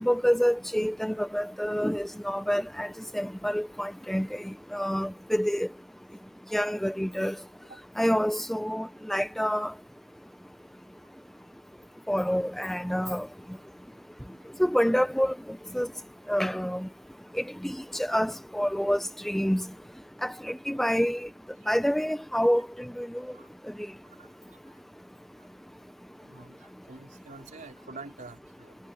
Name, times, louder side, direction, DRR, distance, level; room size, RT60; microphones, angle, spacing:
voice 1, 0.0-4.4 4.7-5.7 6.5-7.3 8.0-9.7 12.1-13.3 14.6-15.4 15.7-15.9 16.3-16.9 17.6-19.7 20.2-21.3 21.7-23.1, equal, ahead, 0.5 m, -27 dB
voice 2, 26.2-28.8, right 3 dB, 40° right, 4.0 m, -47 dB
head